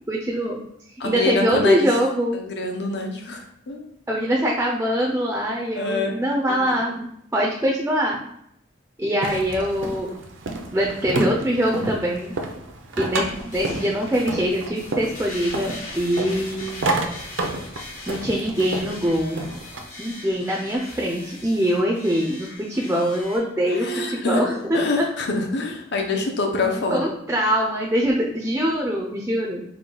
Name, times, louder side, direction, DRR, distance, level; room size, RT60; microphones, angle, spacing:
voice 1, 0.1-0.6 1.0-2.4 4.1-8.2 9.0-10.1 10.7-12.3 13.0-16.7 18.1-19.4 20.0-25.1 26.9-29.6, equal, 10° right, -2 dB, 0.4 m, -23 dB
voice 2, 1.0-1.9 2.3-3.9 5.8-6.2 23.6-27.1, left 3 dB, 60° left, 3 dB, 0.7 m, -25 dB
sound 1, 9.2-19.8, right 2 dB, 75° right, 0.6 m, -30 dB
sound 2, 13.1-23.4, left 2 dB, 40° left, 1.0 m, -40 dB
4.5 x 2.2 x 3.8 m, 0.73 s
head